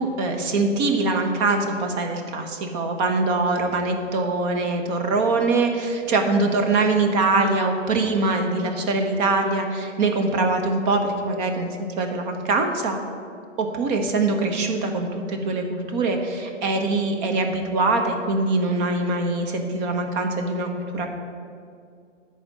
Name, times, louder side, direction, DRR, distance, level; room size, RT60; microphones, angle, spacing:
voice 1, 0.0-11.7 12.0-13.0 13.6-21.1, right 3 dB, 35° right, 4 dB, 1.0 m, -23 dB
11.0 x 4.4 x 7.3 m, 2.3 s
figure-of-eight pair, 120°, 37 cm